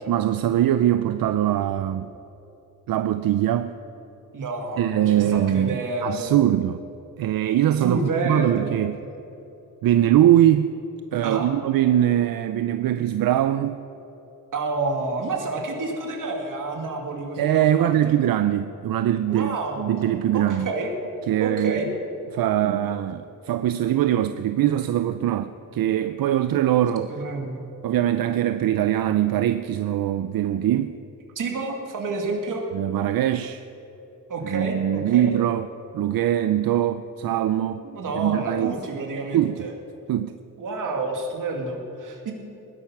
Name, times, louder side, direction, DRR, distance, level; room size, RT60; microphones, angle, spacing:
voice 1, 0.1-2.1 2.9-3.8 4.8-6.8 7.2-8.0 8.2-9.0 9.8-10.7 11.1-13.8 17.4-20.7 21.3-21.8 22.3-27.1 27.8-30.9 32.7-33.6 34.4-35.7 35.9-37.8 38.2-38.8 39.3-39.5 40.1-40.3, right 11 dB, 85° right, 11 dB, 0.6 m, -22 dB
voice 2, 4.3-6.4 7.8-8.8 11.2-11.5 14.5-18.1 19.3-20.9 21.4-21.9 27.1-27.6 31.4-32.6 34.3-35.3 37.8-39.7 40.6-42.3, right 3 dB, 65° right, 1 dB, 2.5 m, -29 dB
19.5 x 11.0 x 5.9 m, 2.9 s
wide cardioid pair, 150°, 34 cm